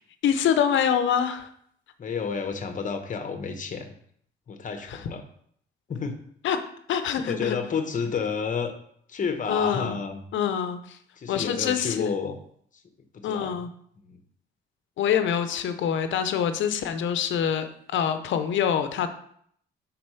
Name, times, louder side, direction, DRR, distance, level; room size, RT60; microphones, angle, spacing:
voice 1, 0.2-1.5 4.9-5.0 6.4-6.6 6.9-7.6 9.5-10.0 10.3-11.0 11.3-12.2 13.2-13.7 15.0-19.1, left 8 dB, 70° left, 9 dB, 0.7 m, -25 dB
voice 2, 2.0-4.0 4.5-5.2 5.9-6.2 7.3-8.7 9.1-10.2 11.2-12.4 13.1-13.6 14.0-14.2, left 5 dB, 40° left, 7 dB, 1.0 m, -30 dB
4.3 x 4.1 x 5.6 m, 0.65 s
cardioid pair, 90°, 20 cm